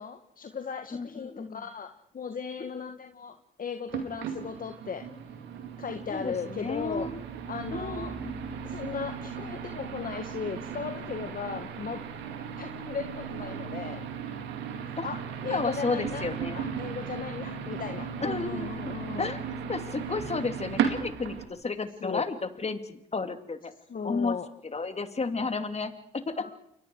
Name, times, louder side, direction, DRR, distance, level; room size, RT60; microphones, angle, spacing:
voice 1, 0.0-1.9 2.1-5.0 5.8-7.1 7.5-8.1 8.6-12.0 12.6-14.1 14.8-16.3 16.5-19.4 22.0-22.3 23.9-24.5 26.3-26.5, left 6 dB, 50° left, 6 dB, 1.8 m, -37 dB
voice 2, 0.9-1.6 6.1-7.2 7.7-8.3 15.0-15.1 15.5-16.6 18.2-19.4 19.7-23.7 24.0-24.3 24.7-26.5, left 4 dB, 35° left, 8 dB, 3.0 m, -32 dB
sound 1, 3.9-21.4, right 7 dB, 85° right, 2.5 m, -36 dB
30.0 x 23.0 x 4.9 m, 0.72 s
supercardioid pair, 50°, 18 cm